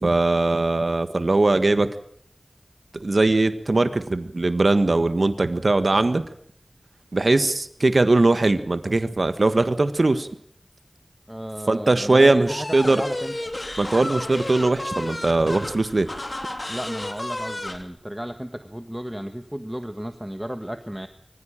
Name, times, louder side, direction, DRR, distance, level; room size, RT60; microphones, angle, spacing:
voice 1, 0.0-1.9 3.0-6.2 7.1-10.3 11.7-13.0 13.8-16.1, right 2 dB, 65° right, 10 dB, 1.5 m, -20 dB
voice 2, 11.3-13.5 16.7-21.1, equal, 10° right, 8 dB, 1.5 m, -34 dB
sound 1, 12.5-17.8, left 1 dB, 40° left, 3.2 m, -32 dB
24.0 x 15.5 x 8.9 m, 0.66 s
wide cardioid pair, 50°, 0 cm